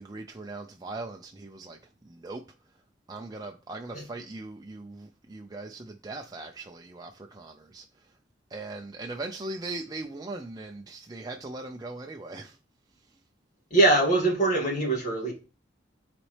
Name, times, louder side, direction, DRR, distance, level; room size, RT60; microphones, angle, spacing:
voice 1, 0.0-2.4 2.7-2.8 3.1-8.2 8.5-12.6 12.9-13.2, right 2 dB, 20° right, 0.5 m, -40 dB
voice 2, 13.7-15.3, right 2 dB, 45° left, 2.2 m, -22 dB
9.8 x 4.2 x 3.3 m
head